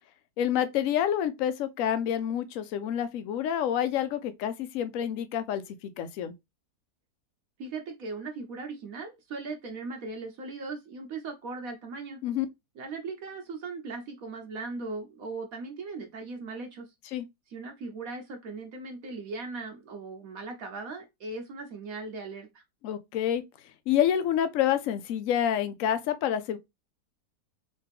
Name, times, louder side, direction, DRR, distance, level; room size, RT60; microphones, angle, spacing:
voice 1, 0.4-5.6 6.0-6.3 12.2-12.5 17.1-17.3 22.8-23.4 23.9-26.6, left 10 dB, 65° left, 0.9 m, -28 dB
voice 2, 7.6-12.2 12.8-16.9 17.5-22.6, right 3 dB, 65° right, 1.2 m, -38 dB
3.4 x 3.2 x 3.3 m
omnidirectional pair, 1.7 m